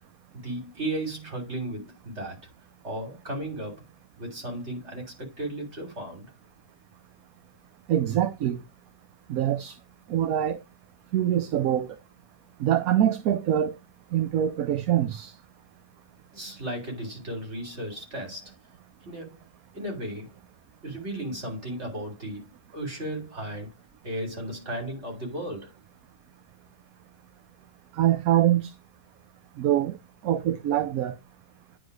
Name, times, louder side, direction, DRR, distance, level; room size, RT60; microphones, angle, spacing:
voice 1, 0.3-2.4 2.8-3.9 4.2-6.3 16.3-18.5 19.0-19.4 19.7-20.3 20.8-23.7 24.0-25.7, right 1 dB, 50° right, 3.4 m, -35 dB
voice 2, 7.9-8.6 9.3-9.7 10.1-10.6 11.1-11.9 12.6-13.7 14.1-15.3 28.0-28.7 29.6-30.0 30.2-31.1, right 11 dB, 75° right, 1.1 m, -24 dB
9.6 x 4.1 x 4.7 m
omnidirectional pair, 1.5 m